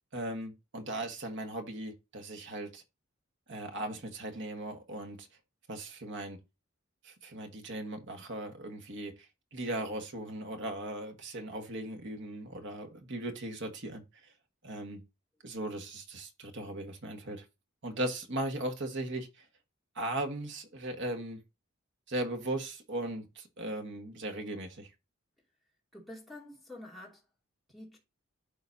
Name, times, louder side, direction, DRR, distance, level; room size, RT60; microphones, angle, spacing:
voice 1, 0.1-2.8 3.5-5.3 5.7-6.4 7.0-9.1 9.5-14.0 14.6-15.0 15.4-17.4 17.8-19.4 19.9-21.4 22.1-24.9, right 1 dB, 55° right, 1.5 m, -38 dB
voice 2, 25.9-27.2 27.7-28.0, left 1 dB, ahead, 2.5 m, -47 dB
11.5 x 3.9 x 2.7 m
head